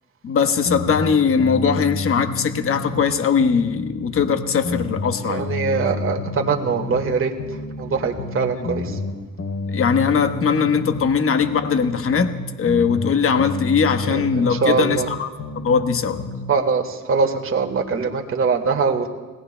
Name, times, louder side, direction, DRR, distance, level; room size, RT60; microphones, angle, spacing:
voice 1, 0.2-5.5 8.6-8.7 9.7-15.3 15.5-16.2, left 6 dB, 45° left, 8 dB, 1.1 m, -20 dB
sound 1, 0.6-3.1 3.4-7.1 7.4-11.1 11.4-15.1 15.4-16.5, left 3 dB, 70° left, 3.6 m, -30 dB
voice 2, 5.2-7.3 7.8-8.8 14.1-15.1 16.5-19.1, right 5 dB, 45° right, 3 dB, 1.7 m, -22 dB
29.5 x 18.0 x 2.2 m, 1.3 s
cardioid pair, 90°, 30 cm